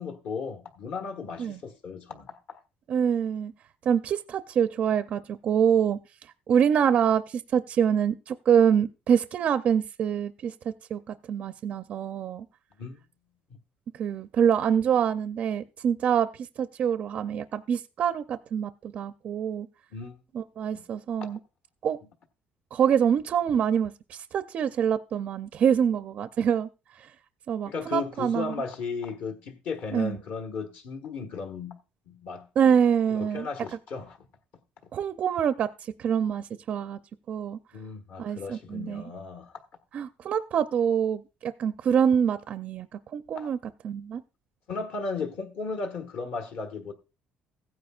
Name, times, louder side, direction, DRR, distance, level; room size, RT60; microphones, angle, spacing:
voice 1, 0.0-2.6 12.8-13.0 19.9-20.2 20.7-20.8 21.2-21.3 27.6-31.8 32.1-32.5 33.1-34.2 37.7-39.6 43.3-43.5 44.7-46.9, left 4 dB, 55° left, 1.4 m, -35 dB
voice 2, 2.9-3.5 3.9-6.0 6.5-10.5 10.9-12.4 14.0-16.3 16.6-19.7 20.3-21.4 21.8-22.0 22.7-26.7 27.5-28.5 29.9-30.2 32.6-33.5 34.9-37.0 37.3-37.6 38.2-39.0 39.9-43.6 43.8-44.2, right 8 dB, 40° right, 0.4 m, -25 dB
16.0 x 9.4 x 2.4 m
cardioid pair, 175°, 3 cm